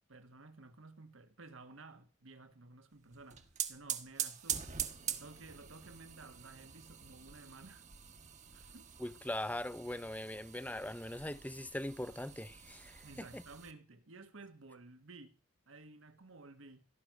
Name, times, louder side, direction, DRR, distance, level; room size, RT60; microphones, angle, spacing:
voice 1, 0.1-7.9 8.5-8.9 13.0-15.4 15.7-16.8, right 3 dB, 80° right, 1.6 m, -54 dB
sound 1, 3.1-13.7, right 9 dB, 35° right, 1.2 m, -44 dB
voice 2, 9.0-13.4, left 1 dB, 10° left, 0.6 m, -41 dB
16.5 x 6.3 x 9.4 m
head